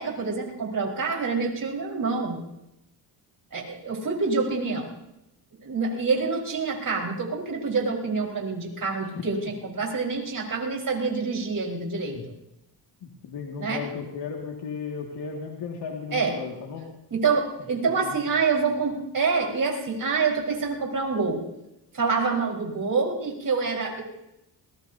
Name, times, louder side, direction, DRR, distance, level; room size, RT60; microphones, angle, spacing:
voice 1, 0.0-2.4 3.5-4.9 5.6-12.2 13.6-13.8 16.1-16.3 17.1-21.4 21.9-24.0, right 4 dB, 50° right, -1 dB, 4.8 m, -26 dB
voice 2, 13.0-16.9 17.8-18.3, left 6 dB, 75° left, 0 dB, 2.2 m, -35 dB
21.0 x 20.5 x 2.8 m, 0.86 s
cardioid pair, 65°, 44 cm